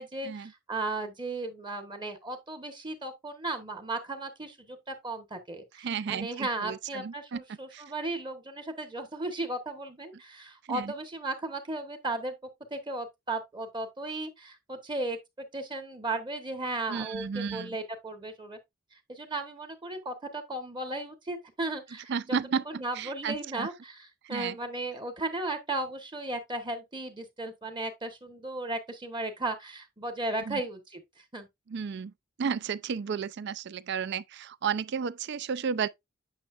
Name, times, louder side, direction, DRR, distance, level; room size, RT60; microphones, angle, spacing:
voice 1, 0.0-12.3 12.7-18.6 18.9-22.4 22.7-31.5, right 2 dB, 25° right, 1.2 m, -36 dB
voice 2, 5.8-7.4 7.7-7.8 10.7-10.9 16.9-17.8 22.1-23.7 24.2-24.6 30.5-30.6 31.7-32.1 32.4-35.9, right 6 dB, 55° right, 0.4 m, -33 dB
8.7 x 5.6 x 2.4 m
head